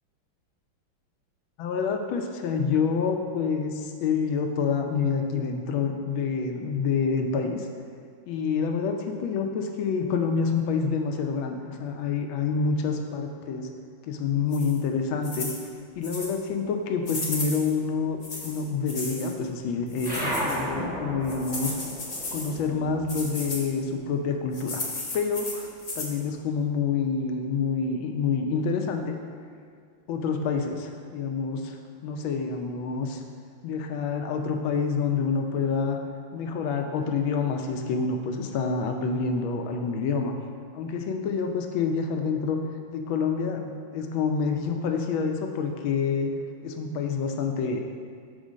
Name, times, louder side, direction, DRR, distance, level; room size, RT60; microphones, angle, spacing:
voice 1, 1.6-7.7 8.3-13.7 14.0-15.5 16.0-18.2 18.4-21.7 22.3-24.8 25.1-25.7 26.0-29.2 30.1-31.8 32.0-33.2 33.6-36.0 36.3-40.4 40.7-42.6 42.9-46.3 46.6-47.8, left 5 dB, 80° left, 4 dB, 1.4 m, -27 dB
sound 1, 14.5-14.8 15.2-15.6 16.0-16.4 17.0-17.7 18.2-19.3 19.9-20.6 21.3-22.5 23.1-23.6 24.5-26.2, left 2 dB, 40° left, 0.5 m, -35 dB
sound 2, 20.0-24.9 25.2-26.6, equal, 10° right, 0.6 m, -35 dB
5.1 x 4.6 x 6.2 m, 2.2 s
omnidirectional pair, 2.2 m